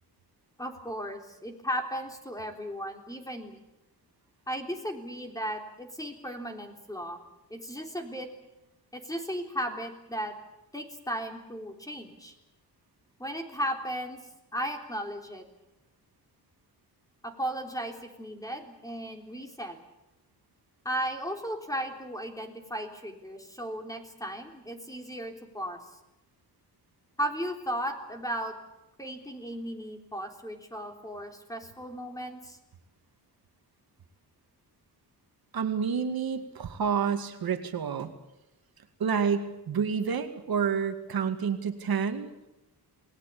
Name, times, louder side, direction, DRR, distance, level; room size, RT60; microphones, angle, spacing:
voice 1, 0.6-3.6 4.5-7.2 7.5-8.3 8.9-10.3 10.7-12.3 13.2-14.2 14.5-15.4 17.2-19.8 20.9-25.8 27.2-28.6 29.0-32.6, equal, 10° left, 4 dB, 3.7 m, -35 dB
voice 2, 35.5-38.1 39.0-42.3, right 6 dB, 60° right, 7 dB, 2.2 m, -29 dB
28.0 x 20.0 x 8.6 m, 0.95 s
wide cardioid pair, 145°, 40 cm